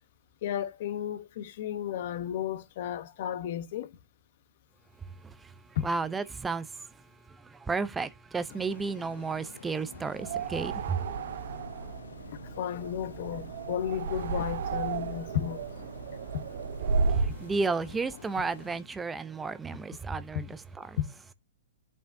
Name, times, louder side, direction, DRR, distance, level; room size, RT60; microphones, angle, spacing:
voice 1, 0.4-3.9 5.7-5.8 12.4-15.6 16.3-16.5 20.3-20.4 21.0-21.1, left 10 dB, 55° left, 1.0 m, -33 dB
voice 2, 5.2-11.1 16.9-21.0, right 4 dB, 10° right, 0.5 m, -33 dB
sound 1, 8.5-18.8, left 6 dB, 80° left, 0.8 m, -49 dB
sound 2, 10.2-17.5, right 5 dB, 60° right, 0.8 m, -33 dB
8.8 x 5.5 x 2.6 m
hypercardioid pair, 125°, 0 cm